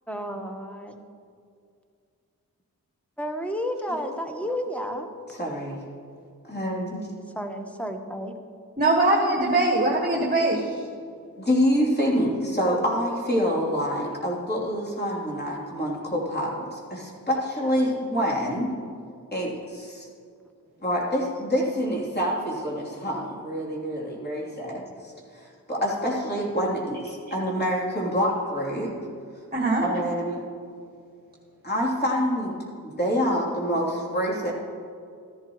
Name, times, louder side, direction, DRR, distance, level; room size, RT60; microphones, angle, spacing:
voice 1, 0.1-1.0 3.2-5.1 7.3-8.3, equal, 5° left, 5 dB, 1.2 m, -31 dB
voice 2, 5.3-5.8 6.4-7.0 11.4-18.7 19.3-20.1 20.8-24.8 25.3-28.9 29.8-30.4 31.6-32.5 32.8-34.5, equal, 30° left, -4 dB, 3.2 m, -26 dB
voice 3, 8.8-10.8 29.5-29.8, right 2 dB, 25° right, -2 dB, 1.6 m, -22 dB
14.0 x 11.0 x 3.1 m, 2.3 s
cardioid pair, 55°, 35 cm